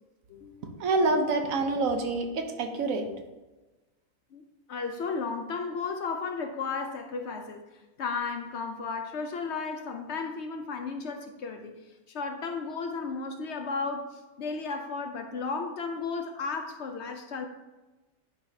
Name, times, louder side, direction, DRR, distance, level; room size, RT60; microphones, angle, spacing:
voice 1, 0.3-0.7 4.3-7.6 8.0-11.8 12.1-17.5, left 4 dB, 65° left, 0.8 m, -34 dB
voice 2, 0.8-3.0, right 3 dB, 75° right, 1.2 m, -26 dB
10.5 x 4.8 x 2.7 m
omnidirectional pair, 1.5 m